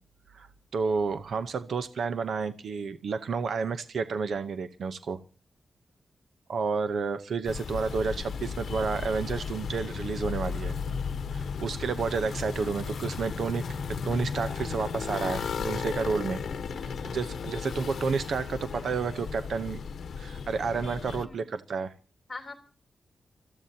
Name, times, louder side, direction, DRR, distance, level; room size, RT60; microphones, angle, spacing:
voice 1, 0.3-5.2 6.5-10.7 11.3-13.6 13.9-16.4 16.8-19.8 20.2-21.9, right 5 dB, 65° right, 11 dB, 0.8 m, -31 dB
sound 1, 7.4-21.3, left 6 dB, 65° left, 1.0 m, -35 dB
voice 2, 16.5-17.2 21.2-21.4 22.3-22.5, left 3 dB, 20° left, 3 dB, 3.3 m, -44 dB
29.5 x 14.5 x 2.8 m, 0.35 s
wide cardioid pair, 170°, 0 cm